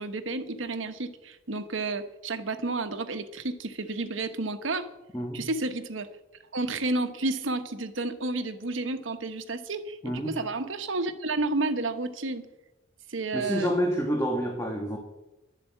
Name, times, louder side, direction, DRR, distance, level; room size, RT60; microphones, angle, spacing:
voice 1, 0.0-4.9 5.3-6.1 6.5-12.5 13.1-13.7, right 2 dB, 85° right, 9 dB, 1.2 m, -31 dB
voice 2, 13.3-15.0, equal, 15° left, 1 dB, 1.5 m, -28 dB
12.0 x 7.6 x 8.5 m, 0.98 s
head